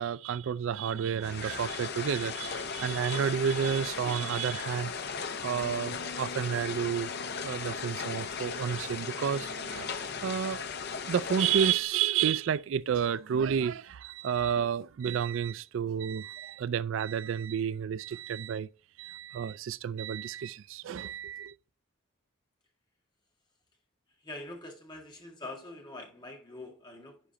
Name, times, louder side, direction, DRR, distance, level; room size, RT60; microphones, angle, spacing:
voice 1, 0.0-5.1 5.4-7.1 7.4-10.6 11.1-18.7 19.0-21.5, right 8 dB, 65° right, 0.3 m, -31 dB
sound 1, 1.2-11.8, left 5 dB, 50° left, 0.7 m, -37 dB
sound 2, 5.6-11.9, left 2 dB, 90° left, 2.2 m, -51 dB
voice 2, 24.1-27.2, left 2 dB, 20° left, 1.9 m, -44 dB
10.0 x 4.9 x 2.9 m
head